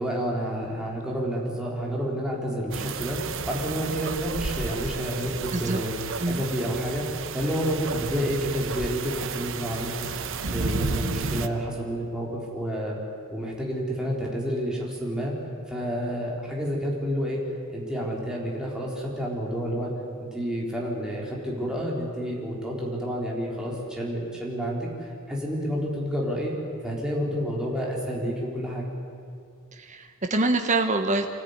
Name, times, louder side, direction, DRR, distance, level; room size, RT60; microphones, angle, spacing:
voice 1, 0.0-3.2 3.5-5.9 6.3-7.0 7.3-10.1 10.4-13.0 13.3-15.3 15.7-17.4 17.7-19.9 20.2-26.5 26.8-28.9, equal, 5° right, -3 dB, 3.9 m, -29 dB
sound 1, 2.7-11.5, right 4 dB, 65° right, 1.0 m, -32 dB
voice 2, 29.7-31.3, right 2 dB, 35° right, 5 dB, 1.3 m, -25 dB
25.0 x 16.5 x 9.6 m, 2.3 s
head